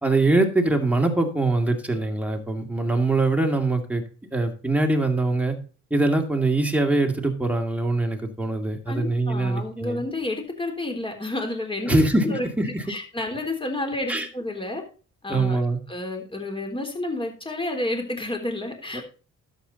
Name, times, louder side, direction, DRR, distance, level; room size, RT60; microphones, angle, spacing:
voice 1, 0.0-4.0 4.3-5.6 5.9-10.0 11.9-12.8 14.1-14.3 15.3-15.8, right 2 dB, 5° right, 3 dB, 2.3 m, -23 dB
voice 2, 8.9-12.0 12.2-14.8 15.2-15.6 15.9-19.0, left 2 dB, 15° left, 3 dB, 3.5 m, -30 dB
11.5 x 7.9 x 4.0 m, 0.36 s
cardioid pair, 90°, 30 cm